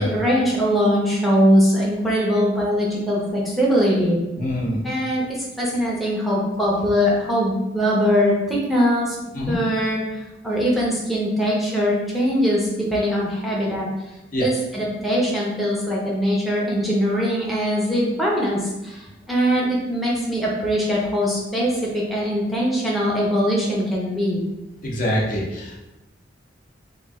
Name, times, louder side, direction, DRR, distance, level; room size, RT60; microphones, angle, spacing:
voice 1, 0.0-4.2 4.8-9.2 9.5-13.9 14.4-24.4, equal, ahead, -5 dB, 0.6 m, -21 dB
voice 2, 4.4-4.9 9.3-9.6 14.3-14.5 24.8-25.8, equal, 50° left, -3 dB, 0.7 m, -24 dB
3.0 x 2.5 x 3.5 m, 0.99 s
head